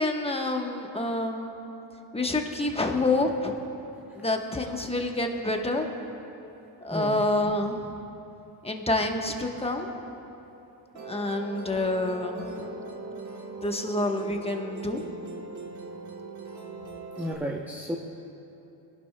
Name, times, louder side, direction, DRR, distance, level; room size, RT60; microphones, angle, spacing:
voice 1, 0.0-1.5 2.1-3.5 4.1-5.9 6.8-7.9 8.6-9.9 11.0-12.7 13.6-15.0, left 2 dB, 10° left, 3 dB, 1.1 m, -28 dB
voice 2, 6.9-7.3 17.2-18.0, equal, 5° right, 0 dB, 0.7 m, -32 dB
Musical instrument, 11.0-17.4, right 2 dB, 35° right, 1.3 m, -40 dB
22.5 x 11.5 x 2.2 m, 2.9 s
supercardioid pair, 85°, 50 cm